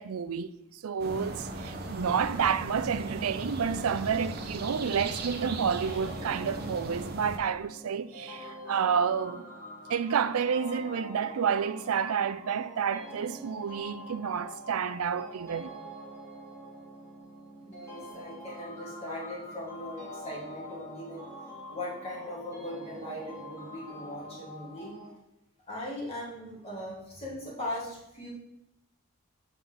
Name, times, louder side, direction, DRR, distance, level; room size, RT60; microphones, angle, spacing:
voice 1, 0.0-9.4 9.9-15.7, right 7 dB, 85° right, 0.4 m, -30 dB
sound 1, 1.0-7.4, right 2 dB, 45° right, 1.0 m, -37 dB
sound 2, 5.9-25.1, equal, 10° left, 2.7 m, -45 dB
voice 2, 17.6-21.2 21.7-24.9 25.7-28.3, left 1 dB, 30° left, 3.0 m, -39 dB
8.1 x 5.8 x 3.9 m
head